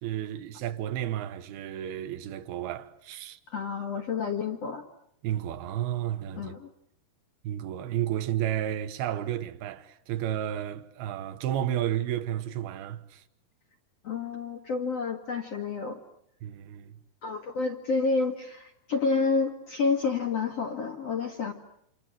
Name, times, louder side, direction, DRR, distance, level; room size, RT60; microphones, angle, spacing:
voice 1, 0.0-3.4 5.2-6.5 7.4-13.2 16.4-17.0, right 11 dB, 70° right, 3.2 m, -32 dB
voice 2, 3.5-4.8 6.4-6.7 14.0-16.0 17.2-21.5, left 4 dB, 50° left, 2.2 m, -29 dB
28.5 x 27.5 x 7.6 m
omnidirectional pair, 4.7 m